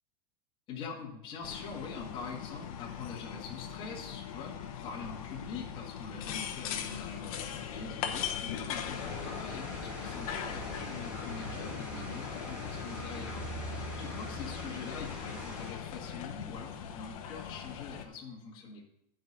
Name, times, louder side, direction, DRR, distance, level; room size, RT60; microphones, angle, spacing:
voice 1, 0.7-18.8, left 5 dB, 25° left, -3 dB, 1.6 m, -44 dB
sound 1, 1.4-18.0, left 8 dB, 60° left, 1.0 m, -40 dB
sound 2, 8.8-15.7, right 1 dB, 5° right, 1.8 m, -43 dB
11.0 x 5.1 x 5.3 m, 0.80 s
supercardioid pair, 175°, 21 cm